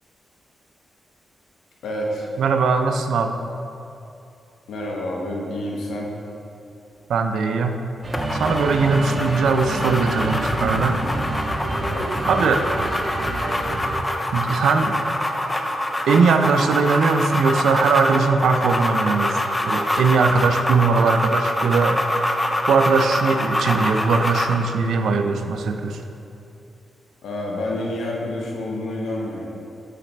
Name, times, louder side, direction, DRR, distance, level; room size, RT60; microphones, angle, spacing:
voice 1, 1.8-2.3 4.7-6.1 11.8-12.2 27.2-29.5, left 1 dB, 85° left, -2 dB, 1.0 m, -28 dB
voice 2, 2.4-3.4 7.1-7.8 8.3-11.0 12.3-12.7 14.3-15.0 16.1-19.4 19.7-22.0 22.7-26.0, right 4 dB, 85° right, 6 dB, 0.4 m, -20 dB
sound 1, 8.0-13.9, right 2 dB, 35° right, 0.6 m, -28 dB
sound 2, 8.1-24.6, left 1 dB, 15° left, 0.5 m, -25 dB
8.3 x 3.3 x 4.1 m, 2.7 s
cardioid pair, 90°, 0 cm